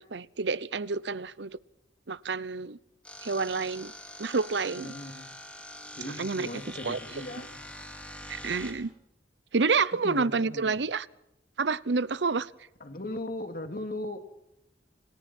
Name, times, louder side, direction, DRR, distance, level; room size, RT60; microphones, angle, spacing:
voice 1, 0.0-1.6 2.1-2.8 3.2-3.9 4.2-4.9 6.2-6.5 6.8-7.0 8.3-8.9 9.5-11.1 11.6-12.5, right 4 dB, 85° right, 18 dB, 0.8 m, -28 dB
sound 1, 3.0-8.7, left 1 dB, 10° left, 4.4 m, -44 dB
voice 2, 4.7-5.3 6.0-7.6 10.0-10.8 12.8-14.2, left 1 dB, 55° left, 5 dB, 2.6 m, -38 dB
29.5 x 26.5 x 4.5 m, 0.86 s
head